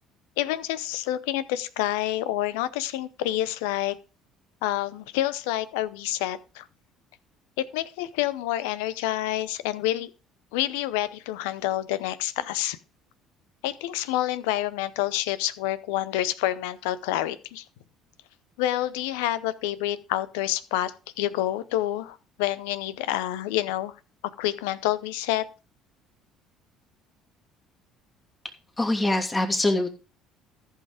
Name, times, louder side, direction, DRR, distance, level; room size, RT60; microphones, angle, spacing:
voice 1, 0.4-4.0 4.6-6.7 7.6-10.1 10.5-12.8 13.6-17.6 18.6-23.9 24.4-25.4, left 14 dB, 75° left, 16 dB, 0.7 m, -28 dB
voice 2, 28.8-29.9, left 2 dB, 20° left, 3 dB, 2.7 m, -23 dB
14.0 x 5.6 x 5.0 m, 0.33 s
hypercardioid pair, 60°, 0 cm